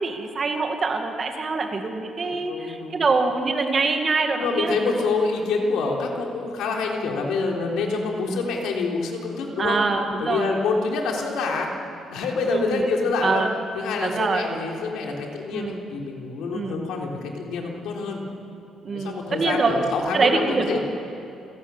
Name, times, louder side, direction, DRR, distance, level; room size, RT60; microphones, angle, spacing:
voice 1, 0.0-4.8 9.6-10.5 12.5-12.8 13.2-13.5 14.0-14.4 15.5-15.8 16.5-16.8 18.8-19.8 20.1-20.8, right 4 dB, 30° right, 4 dB, 2.1 m, -24 dB
voice 2, 2.2-3.0 4.4-9.8 10.2-11.7 12.1-13.4 13.8-18.2 18.9-20.8, left 4 dB, 85° left, 0 dB, 3.7 m, -26 dB
29.0 x 17.5 x 7.3 m, 2.7 s
cardioid pair, 155°, 0 cm